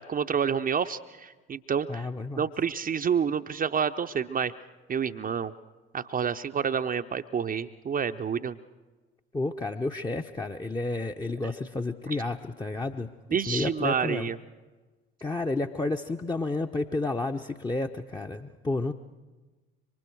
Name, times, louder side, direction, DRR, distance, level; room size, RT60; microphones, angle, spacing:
voice 1, 0.0-2.1 2.4-4.5 4.9-5.5 5.9-8.6 12.1-12.2 13.3-14.4, right 7 dB, 25° right, 8 dB, 0.7 m, -28 dB
voice 2, 1.9-2.4 9.3-13.1 13.5-14.3 15.2-18.9, left 2 dB, 10° left, 3 dB, 0.7 m, -31 dB
26.5 x 24.0 x 4.6 m, 1.2 s
figure-of-eight pair, 55°, 32 cm